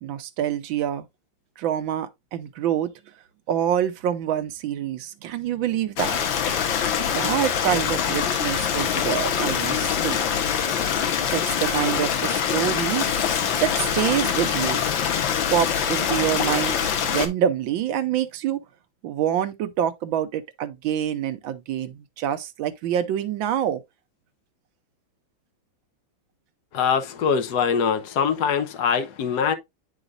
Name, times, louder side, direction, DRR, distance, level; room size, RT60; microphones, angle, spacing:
voice 1, 0.0-1.1 1.6-2.9 3.5-6.2 7.0-10.2 11.3-14.8 15.5-18.6 19.0-23.8, right 10 dB, 80° right, 1.5 m, -26 dB
Stream, 6.0-17.3, left 8 dB, 75° left, 1.7 m, -24 dB
voice 2, 26.7-29.5, left 6 dB, 60° left, 1.3 m, -23 dB
11.0 x 4.0 x 2.4 m
omnidirectional pair, 2.2 m